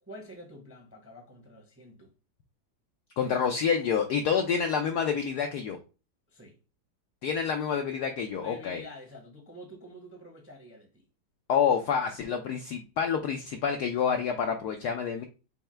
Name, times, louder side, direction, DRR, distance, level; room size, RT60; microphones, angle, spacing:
voice 1, 0.0-2.1 6.3-6.6 8.3-11.0, equal, 10° right, 0.6 m, -48 dB
voice 2, 3.2-5.8 7.2-8.8 11.5-15.2, left 7 dB, 75° left, 0.9 m, -28 dB
5.6 x 2.1 x 4.3 m
omnidirectional pair, 2.2 m